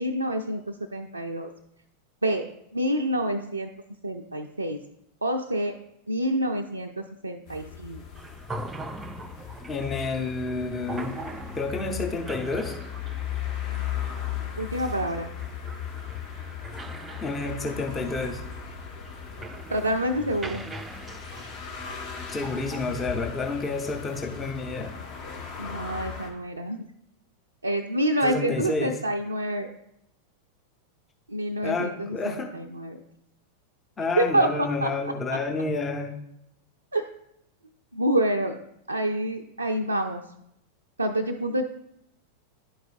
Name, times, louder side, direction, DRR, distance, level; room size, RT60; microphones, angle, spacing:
voice 1, 0.0-1.5 2.2-2.4 2.7-3.7 4.0-4.8 5.2-5.7 6.1-8.0 14.6-15.3 19.7-20.7 25.6-26.8 27.6-29.7 31.3-33.0 34.2-34.9 35.3-35.4 36.9-37.0 37.9-38.5 38.9-40.2 41.0-41.6, right 1 dB, 80° right, 1 dB, 0.4 m, -27 dB
sound 1, 7.5-26.3, left 8 dB, 45° left, 1.3 m, -37 dB
sound 2, 8.1-22.8, right 2 dB, 15° right, 0.4 m, -42 dB
voice 2, 9.7-11.1 11.6-12.8 17.2-18.4 22.3-24.9 28.2-28.9 31.6-32.5 34.0-36.1, left 3 dB, 20° left, 3 dB, 0.8 m, -29 dB
11.0 x 4.7 x 2.5 m, 0.78 s
figure-of-eight pair, 90°, 0 cm